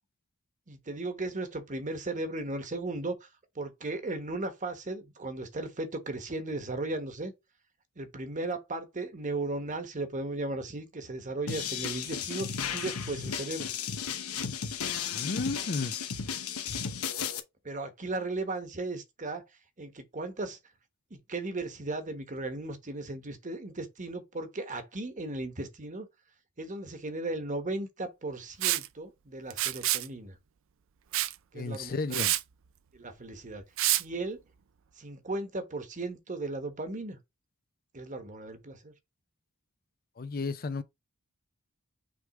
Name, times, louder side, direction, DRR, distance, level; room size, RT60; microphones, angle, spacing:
voice 1, 0.7-3.3 3.5-7.3 8.0-13.7 17.6-19.4 19.8-20.6 21.1-26.1 26.6-30.4 31.5-32.2 32.9-33.6 34.0-34.4 35.0-37.2 37.9-38.9, right 2 dB, 35° right, 1.2 m, -36 dB
sound 1, 11.5-17.4, left 7 dB, 85° left, 1.0 m, -34 dB
voice 2, 15.1-16.0 31.5-32.4 40.2-40.8, left 3 dB, 45° left, 0.5 m, -33 dB
Liquid, 28.6-28.9 29.5-30.1 31.1-31.3 31.7-31.8 32.1-32.4 33.8-34.0, right 15 dB, 60° right, 0.5 m, -27 dB
6.1 x 3.5 x 4.8 m
head